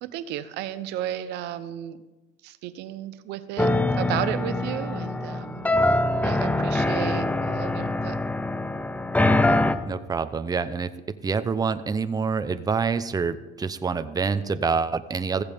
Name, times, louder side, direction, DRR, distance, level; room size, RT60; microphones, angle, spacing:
voice 1, 0.0-2.0 2.4-8.2, right 12 dB, 90° right, 12 dB, 0.8 m, -33 dB
sound 1, 3.6-9.8, left 2 dB, 10° left, 0.8 m, -24 dB
voice 2, 9.8-10.9 11.2-15.4, right 5 dB, 20° right, 11 dB, 0.7 m, -26 dB
15.0 x 15.0 x 3.6 m, 1.1 s
cardioid pair, 110°, 17 cm